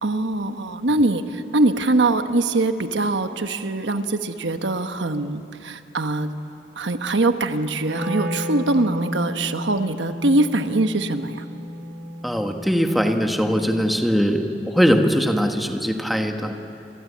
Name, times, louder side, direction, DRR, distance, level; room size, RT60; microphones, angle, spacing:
voice 1, 0.0-6.3 6.8-11.4, right 2 dB, 85° right, 8 dB, 1.2 m, -22 dB
Wind instrument woodwind instrument, 7.8-13.9, equal, 55° right, 5.2 m, -33 dB
voice 2, 12.2-16.5, equal, ahead, 4 dB, 1.5 m, -21 dB
28.0 x 23.0 x 8.6 m, 2.7 s
head